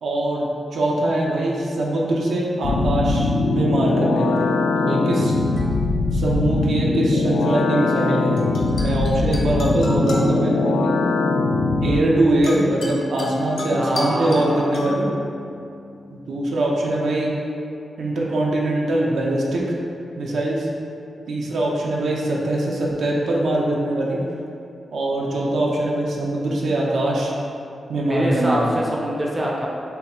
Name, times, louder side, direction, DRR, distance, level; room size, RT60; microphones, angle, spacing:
voice 1, 0.0-0.5 0.7-4.5 4.7-5.3 6.1-8.4 8.8-11.0 11.8-15.1 16.1-17.3 18.0-19.7 20.2-20.7 21.3-24.2 24.9-27.3 27.9-28.8, right 1 dB, 80° right, -3 dB, 0.7 m, -22 dB
sound 1, 2.6-12.0, left 3 dB, 80° left, 0.3 m, -21 dB
sound 2, 5.2-7.0 8.4-16.9, left 1 dB, 65° left, 0.8 m, -33 dB
voice 2, 13.8-14.7 28.1-29.7, right 1 dB, 20° right, -3 dB, 0.5 m, -24 dB
6.6 x 2.4 x 3.0 m, 2.5 s
wide cardioid pair, 160°, 0 cm